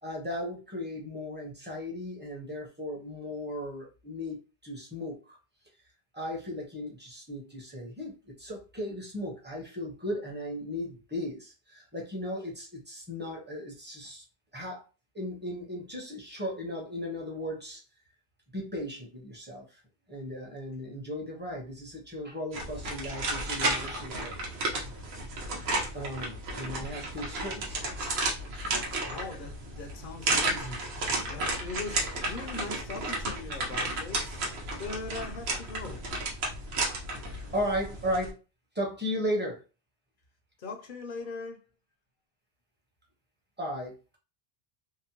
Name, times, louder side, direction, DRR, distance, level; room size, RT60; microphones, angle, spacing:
voice 1, 0.0-5.4 6.1-14.2 14.5-14.8 15.1-17.8 18.5-19.8 20.1-24.3 25.9-28.0 37.5-38.4 38.7-39.6 43.6-44.2, equal, 10° right, 0.7 m, -36 dB
sound 1, 22.5-38.3, right 2 dB, 85° right, 0.9 m, -33 dB
voice 2, 29.0-31.0 31.3-34.4 34.8-36.1 40.6-41.6, left 3 dB, 60° left, 0.7 m, -40 dB
2.8 x 2.0 x 2.8 m
omnidirectional pair, 1.0 m